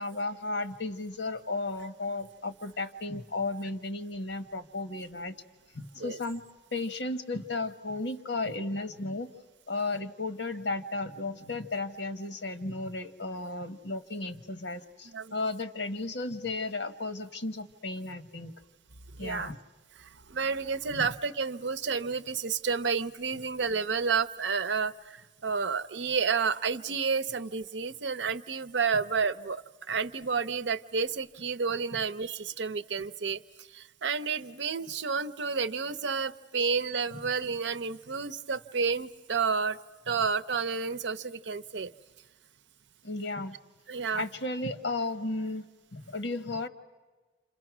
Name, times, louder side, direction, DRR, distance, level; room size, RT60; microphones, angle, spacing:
voice 1, 0.0-5.4 5.7-6.4 6.7-9.3 9.7-18.5 19.2-19.6 20.9-21.1 43.0-43.6 44.1-45.6 45.9-46.7, left 2 dB, 75° left, 9 dB, 1.3 m, -34 dB
voice 2, 19.2-19.5 20.0-33.4 33.7-39.8 40.1-41.9 43.9-44.2, right 5 dB, 90° right, 13 dB, 0.7 m, -30 dB
28.5 x 27.5 x 6.1 m, 1.3 s
head